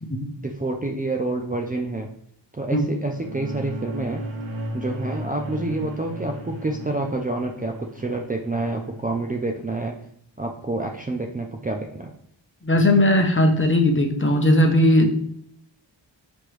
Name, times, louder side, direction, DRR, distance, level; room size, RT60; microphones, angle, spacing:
voice 1, 0.4-2.1 2.5-4.2 4.7-9.9 10.4-12.1, right 2 dB, 20° right, 0 dB, 0.5 m, -28 dB
sound 1, 2.9-9.5, right 1 dB, 80° right, 0.9 m, -35 dB
voice 2, 12.6-15.1, left 1 dB, 25° left, 3 dB, 0.9 m, -18 dB
5.3 x 2.9 x 3.2 m, 0.69 s
cardioid pair, 50°, 47 cm